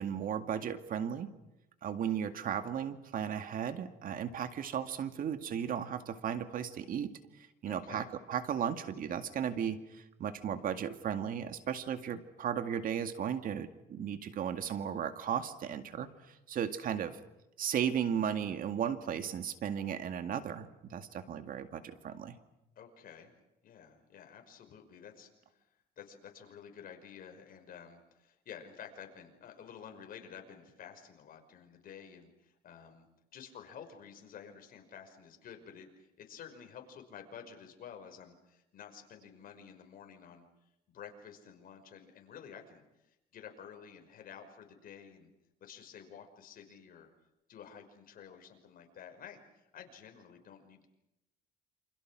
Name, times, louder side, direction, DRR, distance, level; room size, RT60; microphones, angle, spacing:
voice 1, 0.0-1.3 1.8-7.1 7.4-17.2 17.6-22.4, right 8 dB, 55° right, 9 dB, 2.1 m, -35 dB
voice 2, 7.6-8.1 22.8-23.3 23.6-25.6 26.0-33.1 33.3-40.5 40.9-45.3 45.6-47.1 47.5-50.9, left 8 dB, 55° left, 5 dB, 5.5 m, -51 dB
28.5 x 27.0 x 6.3 m, 0.90 s
cardioid pair, 110°, 17 cm